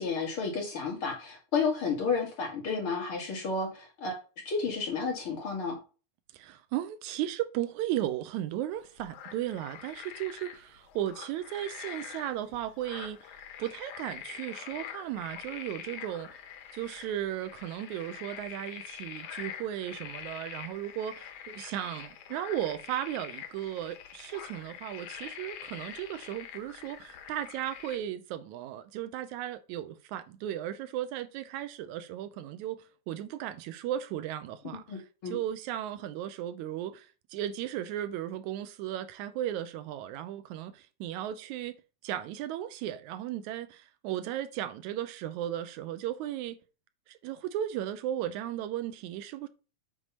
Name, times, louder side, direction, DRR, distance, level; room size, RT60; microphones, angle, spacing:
voice 1, 0.0-4.2 4.5-5.8 34.9-35.4, left 4 dB, 50° left, 2.6 m, -31 dB
voice 2, 6.3-13.2 13.6-16.4 16.7-41.8 42.0-46.6 47.1-49.5, right 12 dB, 90° right, 2.1 m, -36 dB
sound 1, 8.7-28.0, left 8 dB, 80° left, 2.4 m, -45 dB
8.0 x 3.6 x 5.4 m
omnidirectional pair, 3.3 m